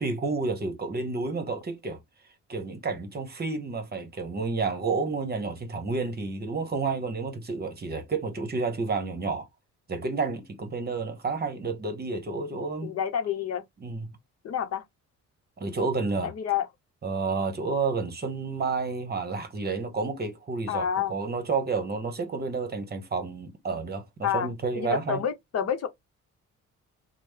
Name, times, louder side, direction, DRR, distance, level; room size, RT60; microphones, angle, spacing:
voice 1, 0.0-2.0 2.5-9.5 9.9-12.9 13.8-14.1 15.6-16.3 17.0-25.2, right 4 dB, 30° right, 0.9 m, -30 dB
voice 2, 12.8-13.6 14.4-14.8 16.2-16.7 20.7-21.2 24.2-25.9, left 9 dB, 55° left, 0.7 m, -29 dB
3.0 x 2.0 x 3.4 m
cardioid pair, 90°, 30 cm